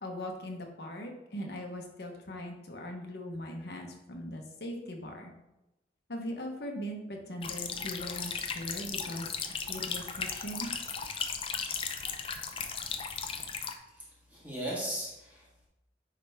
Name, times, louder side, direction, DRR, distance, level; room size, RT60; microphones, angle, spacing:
voice 1, 0.0-5.3 6.1-10.7, equal, 65° left, 2 dB, 1.1 m, -40 dB
sound 1, 7.4-13.7, left 6 dB, 30° left, 0.5 m, -36 dB
voice 2, 13.9-15.7, right 1 dB, 10° right, -7 dB, 1.7 m, -38 dB
9.6 x 3.4 x 3.5 m, 0.95 s
head